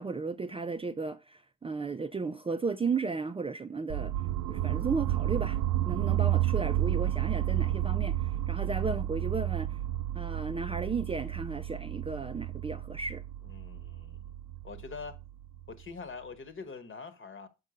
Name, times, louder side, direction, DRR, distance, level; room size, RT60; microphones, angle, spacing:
voice 1, 0.0-4.1 4.5-9.8 10.1-13.2, right 4 dB, 20° right, 0.5 m, -34 dB
sound 1, 3.9-15.8, right 13 dB, 85° right, 0.5 m, -31 dB
voice 2, 13.4-14.3 14.6-15.2 15.7-17.5, left 5 dB, 40° left, 1.3 m, -44 dB
6.8 x 5.2 x 4.9 m
cardioid pair, 90°, 30 cm